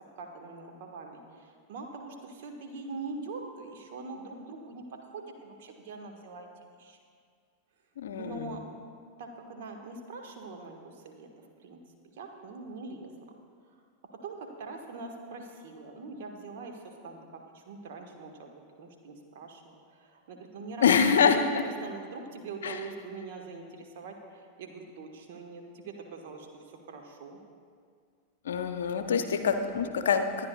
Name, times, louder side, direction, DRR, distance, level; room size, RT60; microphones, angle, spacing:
voice 1, 0.2-6.5 6.8-7.0 8.2-8.6 9.2-11.3 11.6-11.8 12.0-13.1 14.2-27.4 29.2-29.3, right 4 dB, 55° right, 3 dB, 1.4 m, -43 dB
voice 2, 8.0-8.5 20.8-21.6 22.6-22.8 28.5-30.5, left 6 dB, 65° left, 8 dB, 0.7 m, -25 dB
21.5 x 9.9 x 2.3 m, 2.1 s
figure-of-eight pair, 90°, 0 cm